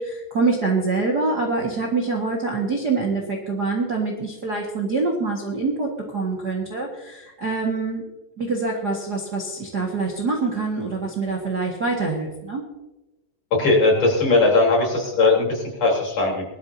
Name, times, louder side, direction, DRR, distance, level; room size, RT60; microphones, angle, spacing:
voice 1, 0.0-8.0 8.4-12.6, right 3 dB, 40° right, -2 dB, 1.6 m, -25 dB
voice 2, 13.5-16.4, left 3 dB, 45° left, -2 dB, 4.6 m, -19 dB
20.5 x 12.5 x 2.8 m, 1.0 s
omnidirectional pair, 4.2 m